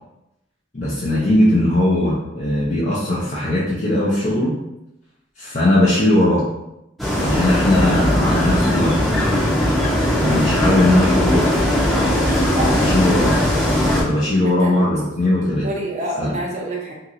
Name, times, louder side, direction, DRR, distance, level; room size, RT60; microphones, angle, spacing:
voice 1, 0.7-4.6 5.4-6.4 7.2-9.0 10.2-11.6 12.6-13.4 14.0-15.7 16.2-16.3, left 1 dB, 40° left, -7 dB, 0.6 m, -19 dB
sound 1, 7.0-14.0, equal, ahead, 0.7 m, -18 dB
voice 2, 12.5-13.1 14.4-15.0 15.6-16.9, right 1 dB, 35° right, -2 dB, 0.6 m, -28 dB
2.8 x 2.8 x 2.5 m, 0.88 s
head